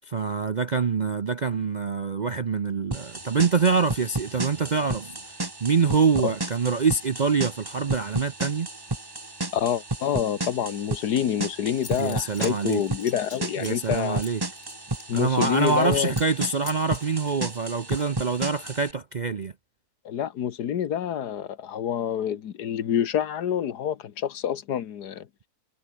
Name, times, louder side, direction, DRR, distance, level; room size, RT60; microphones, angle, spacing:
voice 1, 0.1-5.2 5.6-8.7 12.0-12.8 13.6-14.4 15.1-19.5, right 5 dB, 50° right, 0.5 m, -25 dB
sound 1, 2.9-18.9, right 2 dB, 15° right, 1.4 m, -33 dB
voice 2, 9.5-14.2 15.1-16.1 20.1-25.3, left 9 dB, 80° left, 1.7 m, -27 dB
Zipper (clothing) / Coin (dropping), 11.4-11.5 11.7-15.9 16.1-16.4 16.7-18.4, left 5 dB, 55° left, 2.6 m, -44 dB
omnidirectional pair, 1.7 m